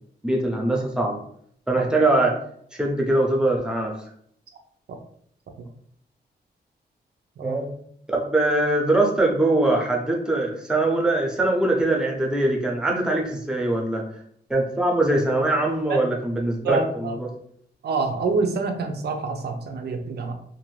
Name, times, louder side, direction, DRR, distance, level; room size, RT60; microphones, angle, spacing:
voice 1, 0.2-1.2 1.7-2.3 2.7-4.0 7.4-7.7 8.1-14.0 14.5-17.3, right 2 dB, 5° right, 0 dB, 0.6 m, -22 dB
voice 2, 16.6-17.2 17.8-20.3, right 4 dB, 70° right, 5 dB, 0.5 m, -26 dB
2.6 x 2.6 x 3.1 m, 0.65 s
wide cardioid pair, 125°, 17 cm